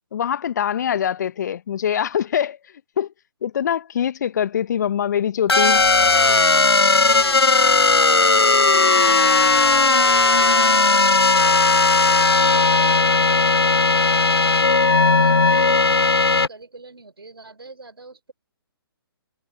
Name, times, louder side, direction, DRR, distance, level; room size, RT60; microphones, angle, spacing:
voice 1, 0.1-2.6 3.0-3.1 3.4-5.8, left 9 dB, 45° left, 1.0 m, -23 dB
sound 1, 5.5-16.5, left 3 dB, 85° left, 0.8 m, -16 dB
voice 2, 7.0-14.2 14.9-18.3, right 3 dB, 75° right, 4.6 m, -43 dB
figure-of-eight pair, 135°, 13 cm